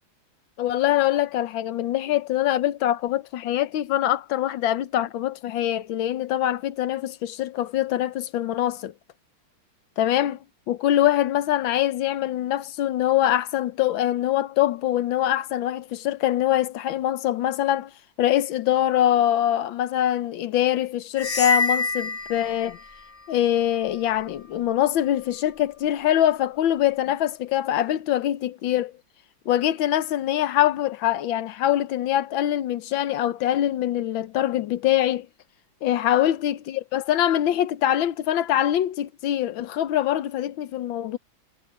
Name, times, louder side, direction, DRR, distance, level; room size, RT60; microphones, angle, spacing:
voice 1, 0.6-8.9 10.0-10.4 10.7-17.9 18.2-22.8 23.3-28.9 29.5-35.3 35.8-41.2, left 12 dB, 80° left, 1.6 m, -23 dB
sound 1, 21.2-23.0, left 3 dB, 30° left, 1.1 m, -26 dB
omnidirectional pair, 2.1 m